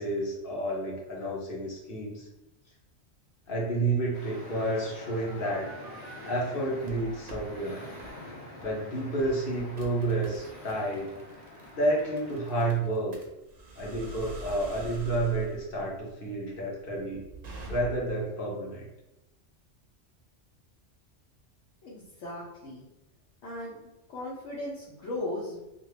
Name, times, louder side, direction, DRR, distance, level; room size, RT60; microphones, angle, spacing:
voice 1, 0.0-2.3 3.5-5.7 6.2-7.8 8.6-11.2 11.7-13.2 13.8-17.2 17.7-18.8, right 2 dB, 55° left, -3 dB, 0.9 m, -30 dB
sound 1, 4.1-12.7, left 1 dB, 35° left, 0.9 m, -46 dB
sound 2, 5.0-6.4 6.8-7.5 8.0-8.2 8.6-8.8 9.2-18.2, right 2 dB, 50° right, 0.6 m, -45 dB
voice 2, 21.8-22.9 23.4-23.8 24.1-25.6, left 1 dB, 85° left, -6 dB, 1.0 m, -37 dB
2.5 x 2.5 x 3.2 m, 0.96 s
omnidirectional pair, 1.2 m